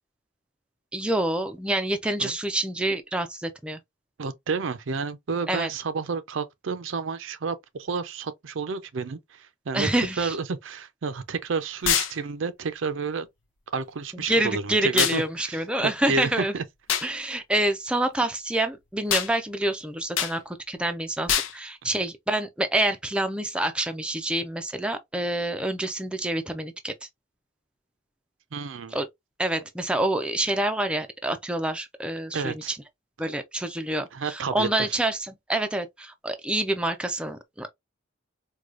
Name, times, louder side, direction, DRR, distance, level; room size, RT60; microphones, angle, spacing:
voice 1, 0.9-3.8 5.5-5.7 9.7-10.4 14.1-16.5 17.0-26.9 28.9-29.1 29.4-32.8 33.2-37.7, right 1 dB, 5° right, 0.3 m, -27 dB
voice 2, 4.2-13.3 13.7-16.6 21.8-21.9 28.5-29.0 32.3-32.7 34.1-35.0, right 4 dB, 75° right, 0.5 m, -30 dB
sound 1, 11.8-12.1 15.0-15.2 16.9-17.1 19.1-19.3 20.2-20.3 21.3-21.5, left 9 dB, 80° left, 0.6 m, -24 dB
4.7 x 2.2 x 2.5 m
head